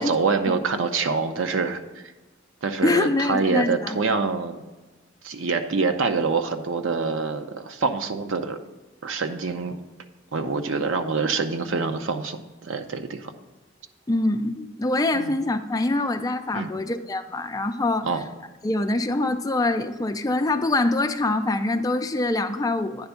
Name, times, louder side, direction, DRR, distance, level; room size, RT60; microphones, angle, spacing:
voice 1, 0.0-2.0 2.6-4.6 5.2-8.6 9.0-9.8 10.3-13.3 15.1-15.3 16.5-16.7 18.0-18.2, right 4 dB, 90° right, 8 dB, 0.6 m, -26 dB
voice 2, 2.8-4.0 14.1-18.1 18.6-23.1, left 2 dB, 20° left, 6 dB, 0.4 m, -24 dB
9.5 x 3.5 x 6.9 m, 1.2 s
head